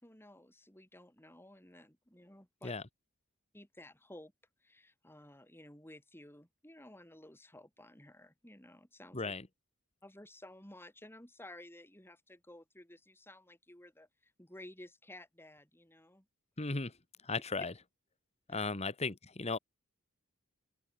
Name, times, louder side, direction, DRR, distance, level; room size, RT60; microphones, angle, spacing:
voice 1, 0.0-2.8 3.5-4.3 4.6-9.3 10.0-16.3 16.6-16.7 18.5-18.7, left 1 dB, 10° left, 5.1 m, -54 dB
voice 2, 9.1-9.5 16.6-16.9 17.2-17.7 18.5-19.6, left 3 dB, 30° left, 1.5 m, -36 dB
open air
head